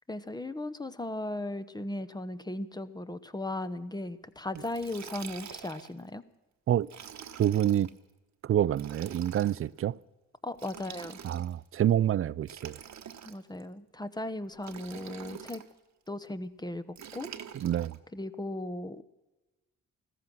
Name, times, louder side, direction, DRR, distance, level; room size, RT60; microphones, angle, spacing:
voice 1, 0.1-6.2 10.4-11.2 13.2-15.6 16.1-16.8 17.1-17.3 18.1-19.0, left 1 dB, 15° left, 0.9 m, -37 dB
Liquid, 4.6-6.0 6.8-7.9 8.7-9.6 10.5-11.7 12.4-13.6 14.6-15.7 17.0-18.0, right 8 dB, 60° right, 1.2 m, -46 dB
voice 2, 7.4-7.9 8.4-10.0 11.2-12.8 17.5-18.0, right 11 dB, 45° right, 0.4 m, -27 dB
15.5 x 14.0 x 6.1 m
cardioid pair, 75°, 32 cm